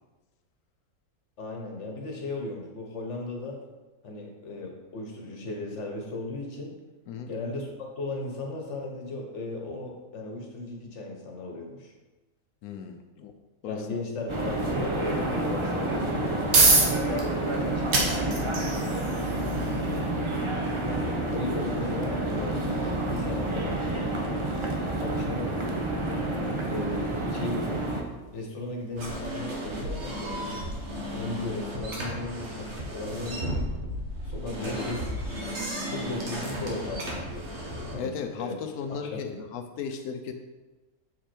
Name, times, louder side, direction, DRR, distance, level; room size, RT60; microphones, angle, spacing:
voice 1, 1.4-3.6 4.0-6.7 7.3-7.7 8.0-11.9 13.7-18.0 20.8-23.8 25.0-25.7 26.3-27.9 28.3-33.6 34.2-35.2 35.9-37.5 37.9-38.6 38.9-39.3, left 2 dB, 55° left, 1 dB, 1.4 m, -36 dB
voice 2, 12.6-13.3 13.6-14.0 18.3-18.5 25.1-25.3 34.6-34.9 38.0-40.3, left 6 dB, 90° left, 5 dB, 1.1 m, -36 dB
sound 1, 14.3-28.0, right 1 dB, 30° right, 0.6 m, -29 dB
sound 2, 16.5-30.9, right 3 dB, 70° right, 1.7 m, -31 dB
sound 3, 29.0-37.9, equal, 50° right, 1.6 m, -34 dB
6.8 x 5.0 x 4.4 m, 1.2 s
omnidirectional pair, 1.5 m